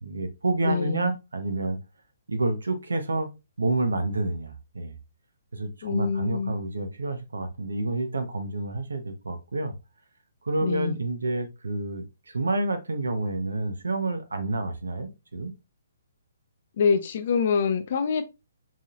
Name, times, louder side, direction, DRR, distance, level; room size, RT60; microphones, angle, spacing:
voice 1, 0.0-1.8 2.3-3.3 3.6-5.0 5.5-9.7 10.4-15.5, right 2 dB, 80° right, 1.0 m, -29 dB
voice 2, 0.6-1.1 5.8-6.5 10.6-11.0 16.8-18.2, left 6 dB, 50° left, 0.7 m, -25 dB
5.1 x 3.6 x 2.6 m
figure-of-eight pair, 135°, 0 cm